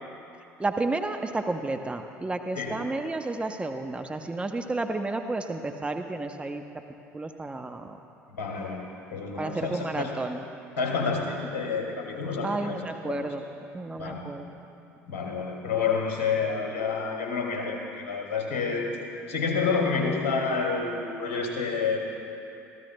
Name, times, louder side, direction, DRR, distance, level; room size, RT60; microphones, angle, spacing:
voice 1, 0.6-6.6 7.1-8.0 9.4-10.4 12.4-13.5 13.7-14.5, right 2 dB, 15° right, 5 dB, 0.8 m, -31 dB
voice 2, 8.3-10.1 10.8-12.8 13.1-13.3 14.0-14.2 15.1-18.9 19.3-22.0, left 5 dB, 75° left, 0 dB, 2.4 m, -29 dB
25.5 x 14.5 x 2.3 m, 2.7 s
hypercardioid pair, 65°, 8 cm